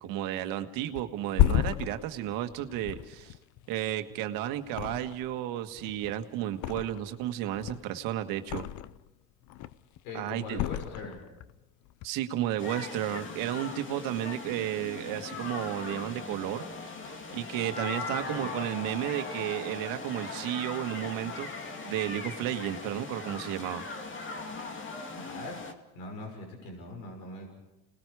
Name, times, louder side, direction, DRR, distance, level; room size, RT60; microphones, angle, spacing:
voice 1, 0.0-3.3 3.7-8.6 10.1-10.6 12.0-16.6 17.3-23.8, right 12 dB, 75° right, 8 dB, 1.6 m, -33 dB
Thump thud, 1.0-4.2 4.7-5.5 5.7-7.2 7.5-9.1 9.4-10.0 10.5-11.5 11.9-12.1, left 13 dB, 60° left, 0.7 m, -32 dB
voice 2, 10.0-11.2 18.3-18.5 25.1-25.6 25.9-27.5, left 2 dB, 85° left, 3 dB, 6.2 m, -41 dB
sound 1, 12.6-25.7, left 3 dB, 35° left, 2.5 m, -39 dB
30.0 x 20.0 x 4.9 m, 1.0 s
cardioid pair, 110°, 33 cm